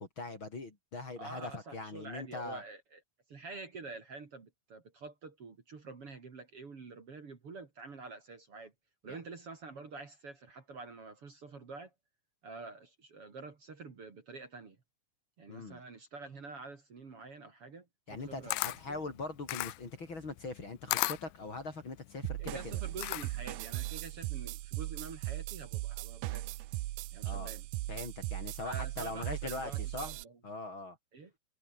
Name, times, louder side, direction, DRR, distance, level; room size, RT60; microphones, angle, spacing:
voice 1, 0.0-2.6 9.1-9.2 15.5-15.8 18.1-22.8 27.2-27.5 27.9-30.2 30.4-31.0, left 3 dB, 35° left, 4.0 m, -41 dB
voice 2, 1.2-3.0 3.3-8.7 9.0-11.9 12.4-14.8 15.4-17.9 18.1-19.0 22.4-26.5 27.1-27.7 28.6-30.4 31.1-31.3, right 3 dB, 40° right, 3.4 m, -47 dB
Camera, 18.1-23.6, left 20 dB, 80° left, 2.2 m, -37 dB
sound 1, 22.2-30.2, right 18 dB, 85° right, 2.6 m, -38 dB
omnidirectional pair, 4.3 m